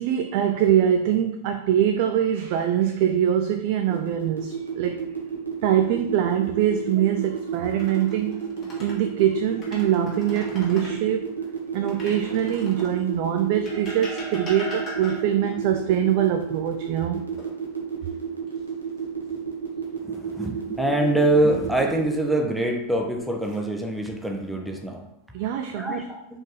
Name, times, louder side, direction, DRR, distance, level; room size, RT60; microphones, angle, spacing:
voice 1, 0.0-5.0 5.6-8.5 8.8-11.3 11.7-17.2 25.3-26.1, right 10 dB, 45° right, 6 dB, 0.4 m, -23 dB
sound 1, 3.9-22.3, right 7 dB, 80° right, 1.1 m, -31 dB
sound 2, 7.6-9.0 9.5-11.0 11.9-13.0 13.7-15.5 17.4-18.1 18.5-18.7 21.6-22.2 22.9-23.6, left 1 dB, 30° left, 1.6 m, -39 dB
voice 2, 20.0-25.1 25.8-26.2, right 1 dB, ahead, 2 dB, 0.7 m, -24 dB
4.3 x 3.7 x 3.2 m, 0.84 s
figure-of-eight pair, 90°, 0 cm